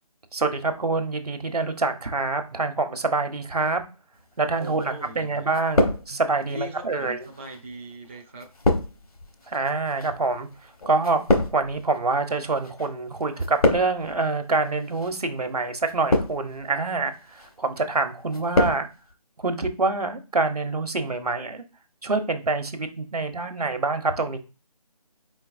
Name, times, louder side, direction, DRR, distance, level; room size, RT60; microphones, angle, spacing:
voice 1, 0.3-3.8 4.4-7.2 9.5-10.5 10.9-18.9 19.4-21.6 22.0-24.4, right 3 dB, 80° right, 7 dB, 1.1 m, -26 dB
sound 1, 4.6-5.2 5.5-6.5 7.2-12.9 13.1-14.2 14.9-15.2 15.8-16.6 17.1-17.5 17.9-18.8 19.1-19.2, left 2 dB, 65° left, 1.2 m, -26 dB
voice 2, 4.6-5.5 6.5-8.5, equal, 20° right, 0 dB, 0.4 m, -39 dB
4.5 x 4.0 x 2.5 m, 0.31 s
figure-of-eight pair, 160°, 20 cm